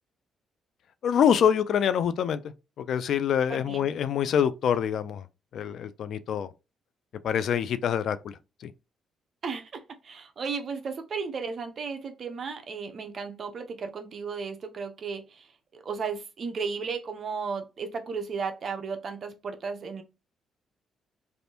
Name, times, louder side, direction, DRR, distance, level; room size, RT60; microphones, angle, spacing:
voice 1, 1.0-2.4 2.8-5.3 5.5-6.5 7.2-8.3 8.6-8.7, left 8 dB, 70° left, 0.3 m, -25 dB
voice 2, 3.5-3.9 9.4-15.5 15.7-20.0, right 5 dB, 50° right, 0.6 m, -34 dB
3.3 x 2.5 x 2.7 m
cardioid pair, 90°, 0 cm